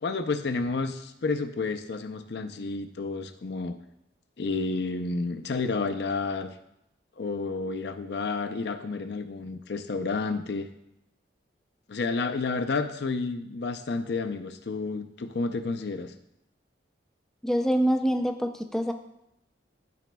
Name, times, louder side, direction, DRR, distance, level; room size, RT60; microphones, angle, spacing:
voice 1, 0.0-3.8 4.4-6.6 7.2-10.7 11.9-16.1, left 3 dB, 65° left, 8 dB, 0.5 m, -30 dB
voice 2, 17.4-18.9, equal, 5° left, 5 dB, 0.4 m, -25 dB
12.0 x 5.0 x 2.3 m, 0.81 s
head